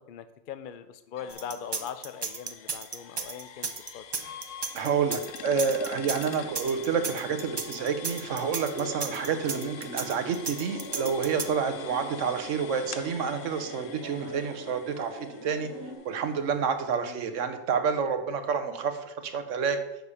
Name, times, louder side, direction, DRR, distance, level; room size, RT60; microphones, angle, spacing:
voice 1, 0.1-4.3 11.8-12.0 16.9-17.2, left 8 dB, 55° left, 11 dB, 0.6 m, -41 dB
sound 1, 1.2-16.8, left 9 dB, 75° left, 1.0 m, -46 dB
sound 2, 1.3-11.4, right 5 dB, 40° right, 0.3 m, -34 dB
voice 2, 4.7-15.7 16.0-19.8, right 6 dB, 70° right, 8 dB, 1.2 m, -29 dB
sound 3, 6.0-16.0, equal, 15° right, 2.0 m, -43 dB
6.5 x 5.0 x 6.9 m, 0.97 s
omnidirectional pair, 1.3 m